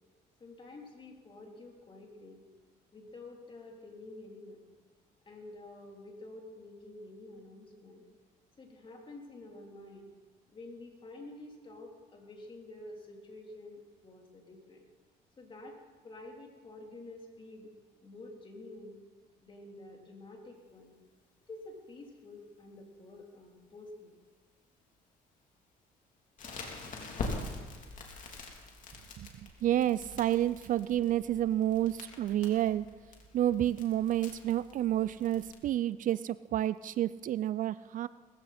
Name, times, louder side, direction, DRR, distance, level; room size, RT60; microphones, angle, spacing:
voice 1, 0.4-2.4 2.9-4.6 5.2-8.0 8.6-10.1 10.5-14.8 15.4-15.8 16.0-17.7 18.0-19.0 19.4-20.9 21.5-24.2, left 2 dB, 30° left, 0 dB, 3.3 m, -49 dB
Crackle, 26.4-35.5, left 3 dB, 50° left, 3.0 m, -44 dB
voice 2, 29.6-32.9 33.3-38.1, right 12 dB, 50° right, 17 dB, 0.4 m, -29 dB
19.5 x 15.0 x 4.3 m, 1.4 s
cardioid pair, 110°, 17 cm